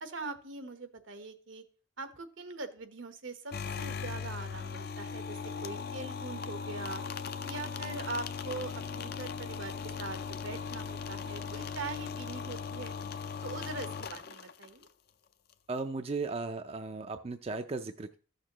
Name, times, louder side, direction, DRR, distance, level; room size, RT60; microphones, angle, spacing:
voice 1, 0.0-1.6 2.0-7.0 7.4-12.9 13.4-14.9, right 3 dB, 80° right, 9 dB, 1.1 m, -42 dB
sound 1, 3.5-14.9, left 6 dB, 50° left, 0.5 m, -39 dB
voice 2, 15.7-18.2, right 3 dB, 30° right, 8 dB, 0.4 m, -36 dB
14.0 x 6.5 x 3.0 m, 0.41 s
head